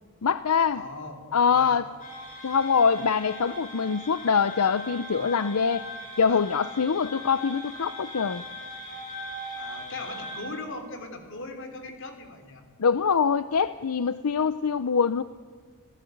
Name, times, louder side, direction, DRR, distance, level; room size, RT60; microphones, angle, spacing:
voice 1, 0.2-0.8 1.3-1.9 2.4-5.9 6.2-8.4 12.8-15.2, left 6 dB, 85° left, 14 dB, 0.6 m, -24 dB
voice 2, 0.7-1.2 1.5-1.8 6.3-6.4 9.6-12.6, left 2 dB, 55° left, 7 dB, 3.4 m, -39 dB
sound 1, 2.0-10.4, equal, 35° left, 6.7 m, -40 dB
29.0 x 16.5 x 9.3 m, 1.5 s
head